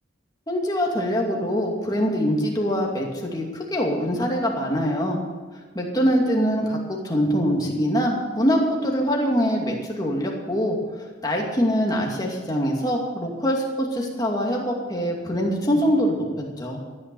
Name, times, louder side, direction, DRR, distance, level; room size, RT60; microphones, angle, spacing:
voice 1, 0.5-5.2 5.7-16.2 16.6-16.8, equal, 20° left, -1 dB, 2.5 m, -24 dB
14.0 x 9.8 x 7.1 m, 1.4 s
head